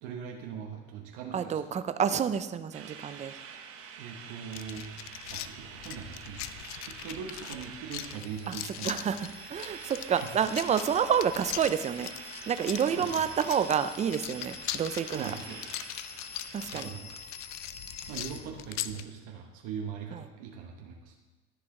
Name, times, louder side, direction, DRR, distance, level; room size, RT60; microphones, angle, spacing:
voice 1, 0.0-1.8 3.9-4.9 5.3-9.1 9.5-10.3 12.8-13.3 15.0-15.6 16.7-17.1 18.1-21.1, right 7 dB, 85° right, 1 dB, 1.0 m, -41 dB
voice 2, 1.3-3.4 8.5-8.6 8.8-12.1 12.5-15.3 16.5-16.9 20.1-20.2, right 8 dB, 25° right, 12 dB, 0.4 m, -29 dB
sound 1, 2.7-16.9, right 7 dB, 50° right, 1.0 m, -47 dB
sound 2, 4.5-19.0, left 13 dB, 65° left, 0.5 m, -41 dB
sound 3, 8.1-18.4, left 5 dB, 20° left, 0.7 m, -48 dB
13.0 x 4.9 x 3.7 m, 1.2 s
cardioid pair, 125°, 30 cm